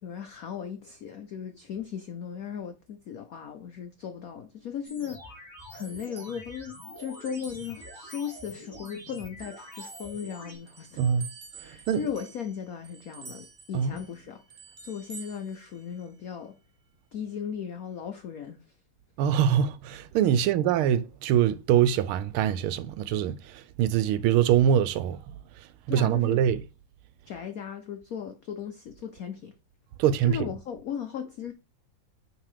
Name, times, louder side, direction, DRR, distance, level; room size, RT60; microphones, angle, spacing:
voice 1, 0.0-5.4 5.7-11.0 11.6-14.4 14.8-16.6 17.1-18.6 20.3-20.5 25.9-26.4 27.3-29.5 30.3-31.5, left 8 dB, 75° left, 0.8 m, -37 dB
sound 1, 4.8-10.6, left 1 dB, 10° left, 3.0 m, -45 dB
sound 2, 5.6-9.0 9.4-16.3, right 5 dB, 50° right, 0.7 m, -50 dB
voice 2, 11.0-11.3 11.6-12.1 13.7-14.0 19.2-25.2 25.9-26.6 30.0-30.5, right 9 dB, 80° right, 1.5 m, -24 dB
8.9 x 3.7 x 4.9 m
omnidirectional pair, 2.4 m